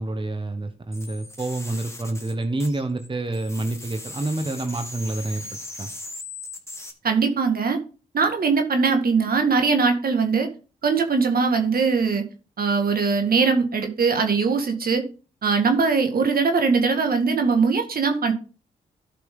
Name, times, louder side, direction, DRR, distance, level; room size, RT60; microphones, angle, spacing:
voice 1, 0.0-5.4 5.8-5.9, right 2 dB, 30° right, 7 dB, 1.3 m, -28 dB
sound 1, 0.9-3.1 3.3-6.9, left 2 dB, 15° left, 2.1 m, -39 dB
voice 2, 7.0-7.8 8.1-10.5 10.8-12.2 12.6-15.0 15.4-18.3, right 5 dB, 60° right, 5 dB, 1.9 m, -21 dB
12.5 x 5.8 x 3.8 m, 0.35 s
supercardioid pair, 50°, 17 cm